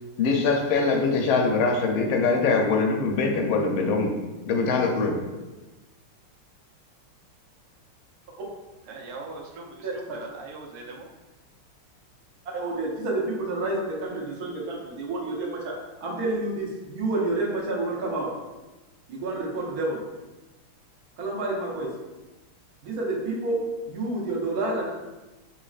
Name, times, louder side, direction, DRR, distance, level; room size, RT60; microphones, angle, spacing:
voice 1, 0.2-4.1 4.5-5.2, left 4 dB, 75° left, 1.5 m, -23 dB
voice 2, 8.9-11.1, right 3 dB, 90° right, 1.7 m, -41 dB
voice 3, 12.5-15.7 16.0-18.3 19.1-20.0 21.2-21.9 22.8-23.6 23.9-24.9, right 2 dB, 50° right, 1.3 m, -29 dB
7.3 x 2.9 x 2.4 m
omnidirectional pair, 2.4 m